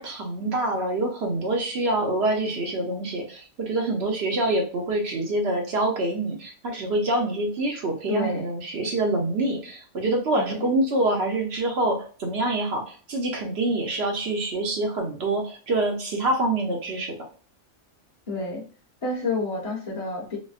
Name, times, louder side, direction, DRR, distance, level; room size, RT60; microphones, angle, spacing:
voice 1, 0.0-17.1, right 2 dB, 55° right, 2 dB, 0.9 m, -26 dB
voice 2, 8.1-8.5 10.4-10.7 18.3-18.6 19.0-20.4, left 3 dB, 30° left, -4 dB, 0.9 m, -29 dB
4.1 x 2.1 x 2.4 m, 0.40 s
omnidirectional pair, 1.4 m